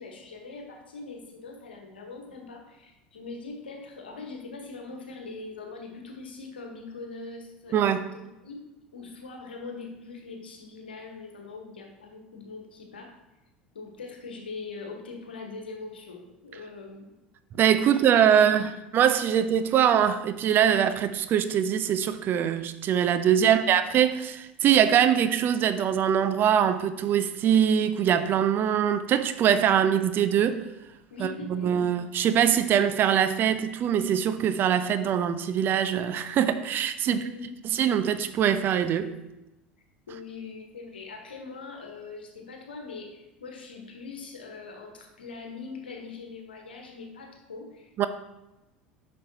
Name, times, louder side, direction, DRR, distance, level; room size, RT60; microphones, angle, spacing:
voice 1, 0.0-8.6 8.9-13.2 13.7-17.1 17.5-18.5 31.1-31.7 37.0-37.5 40.1-48.1, left 4 dB, 75° left, 1.3 m, -42 dB
voice 2, 7.7-8.0 17.6-30.6 31.2-37.2 37.7-39.1 48.0-48.1, right 9 dB, 40° right, 0.6 m, -23 dB
10.0 x 6.3 x 2.8 m
figure-of-eight pair, 70°, 5 cm